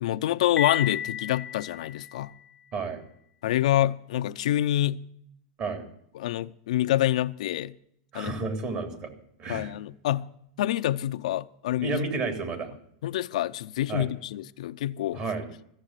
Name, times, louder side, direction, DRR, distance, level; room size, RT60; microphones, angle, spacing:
voice 1, 0.0-2.3 3.4-5.1 6.1-7.8 8.1-8.4 9.5-10.3 10.6-12.0 13.0-15.2, left 13 dB, 80° left, 0.6 m, -27 dB
Piano, 0.6-2.5, left 9 dB, 15° left, 0.4 m, -33 dB
voice 2, 8.1-9.1 9.4-9.7 11.8-12.7 13.9-14.1 15.1-15.5, right 3 dB, 40° right, 3.4 m, -31 dB
15.0 x 7.5 x 8.9 m
supercardioid pair, 135°, 4 cm